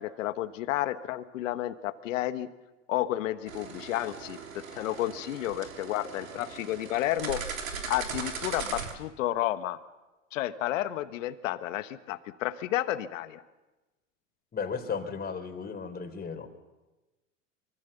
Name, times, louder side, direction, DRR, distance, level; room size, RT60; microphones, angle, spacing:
voice 1, 0.0-2.5 2.9-4.4 4.7-7.4 7.9-9.8 10.3-13.4, left 14 dB, 70° left, 12 dB, 1.3 m, -31 dB
sound 1, 3.5-8.9, right 5 dB, 90° right, 3.4 m, -39 dB
voice 2, 14.5-16.5, left 5 dB, 25° left, 6 dB, 3.9 m, -35 dB
24.5 x 24.5 x 6.9 m, 1.1 s
hypercardioid pair, 90°, 40 cm